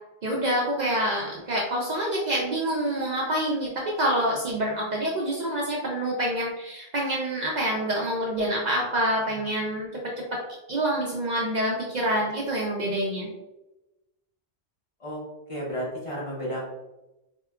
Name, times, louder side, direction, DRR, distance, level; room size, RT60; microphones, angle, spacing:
voice 1, 0.2-9.9 10.3-10.4 10.7-13.3, right 1 dB, 55° right, -2 dB, 0.6 m, -27 dB
voice 2, 15.5-16.6, equal, 35° left, -5 dB, 0.9 m, -32 dB
4.6 x 2.1 x 2.3 m, 0.98 s
omnidirectional pair, 1.0 m